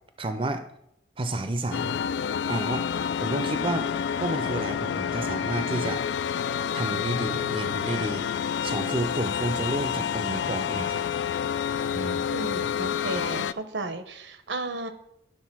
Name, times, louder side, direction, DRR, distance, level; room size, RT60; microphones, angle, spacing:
voice 1, 0.2-0.6 1.2-2.0 2.5-2.9 3.2-3.9 4.2-6.0 6.7-8.2 8.6-11.0 11.9-12.2, right 2 dB, 30° right, 9 dB, 0.5 m, -30 dB
sound 1, 1.7-13.5, left 8 dB, 75° left, 0.3 m, -28 dB
voice 2, 12.3-14.9, right 2 dB, 85° right, 9 dB, 0.9 m, -34 dB
11.5 x 3.9 x 6.0 m, 0.77 s
head